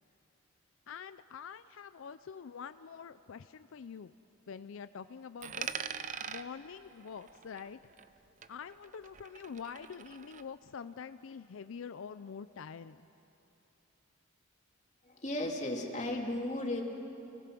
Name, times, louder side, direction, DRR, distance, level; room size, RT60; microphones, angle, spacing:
voice 1, 0.9-4.1 4.5-7.8 8.5-13.1, left 6 dB, 70° left, 12 dB, 0.4 m, -46 dB
Coin (dropping), 5.4-8.2 8.4-10.4, right 7 dB, 40° right, 0.6 m, -43 dB
voice 2, 15.0-16.8, left 1 dB, 35° left, 0 dB, 2.6 m, -35 dB
29.5 x 19.5 x 6.1 m, 3.0 s
head